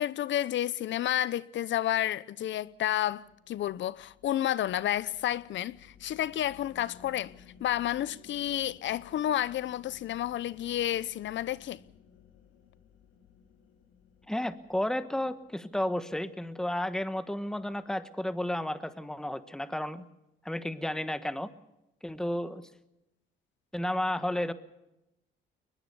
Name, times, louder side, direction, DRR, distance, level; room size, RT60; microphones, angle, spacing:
voice 1, 0.0-7.3 7.6-11.8, left 12 dB, 70° left, 0.8 m, -30 dB
sound 1, 2.6-16.1, left 7 dB, 85° left, 2.6 m, -58 dB
voice 2, 14.3-20.0 20.4-21.5 22.0-22.6 23.7-24.5, left 1 dB, 5° left, 1.3 m, -32 dB
21.5 x 21.0 x 6.9 m
cardioid pair, 90°, 20 cm